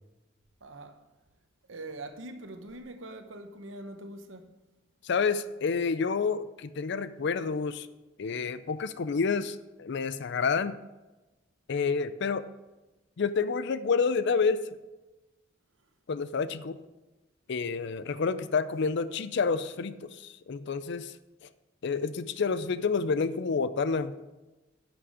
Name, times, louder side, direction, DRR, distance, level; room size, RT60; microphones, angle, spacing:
voice 1, 0.6-1.0 1.7-4.5, right 2 dB, 75° right, 1.0 m, -43 dB
voice 2, 5.0-7.9 8.2-10.8 11.7-12.4 13.2-14.6 16.1-16.8 17.5-21.1 21.4-21.5 21.8-24.2, left 5 dB, 60° left, 0.5 m, -29 dB
11.0 x 6.1 x 4.9 m
head